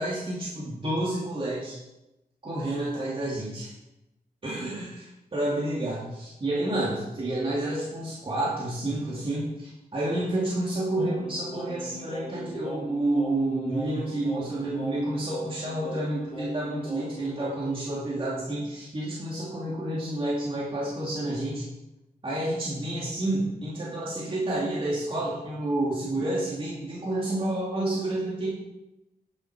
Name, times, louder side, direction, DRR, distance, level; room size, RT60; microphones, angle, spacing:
voice 1, 0.0-1.8 2.4-3.7 4.4-21.6 22.2-28.5, right 1 dB, 35° right, -7 dB, 2.8 m, -29 dB
Singing, 11.0-17.8, equal, 40° left, 2.7 m, -40 dB
10.5 x 7.6 x 5.2 m, 0.95 s
wide cardioid pair, 95°, 17 cm